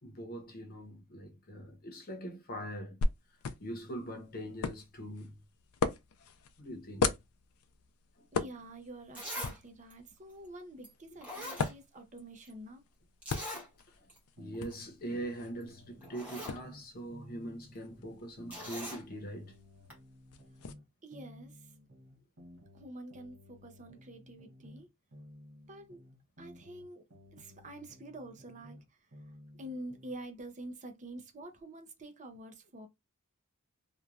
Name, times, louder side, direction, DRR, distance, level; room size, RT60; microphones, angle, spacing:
voice 1, 0.0-3.0 3.6-5.4 6.6-7.1 14.0-14.1 14.4-19.5, right 1 dB, 45° left, 0.8 m, -42 dB
sound 1, 3.0-20.7, left 4 dB, 85° left, 0.4 m, -40 dB
voice 2, 8.3-12.8 21.0-21.6 22.7-24.9 25.7-26.0 26.4-27.0 27.3-28.8 29.6-32.9, right 1 dB, 35° right, 0.6 m, -47 dB
Zipper (clothing), 8.6-8.7 9.1-9.6 9.9-10.0 10.8-10.9 11.2-12.2 12.4-12.5 13.2-13.7 14.1-14.2 14.5-14.7 15.6-15.7 16.0-16.6 18.5-19.0 19.9-20.0, equal, 10° right, 1.2 m, -42 dB
sound 2, 14.4-16.8 17.1-20.8 21.1-24.8 25.1-28.8 29.1-30.2, left 1 dB, 70° right, 1.3 m, -55 dB
3.0 x 2.2 x 2.4 m
head